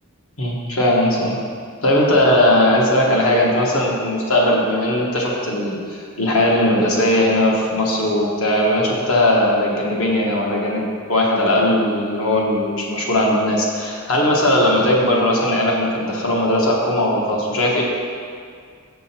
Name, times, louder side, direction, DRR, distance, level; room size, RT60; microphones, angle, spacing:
voice 1, 0.4-1.4 1.8-17.8, left 1 dB, 70° left, -3 dB, 1.3 m, -18 dB
6.8 x 6.2 x 4.3 m, 2.1 s
head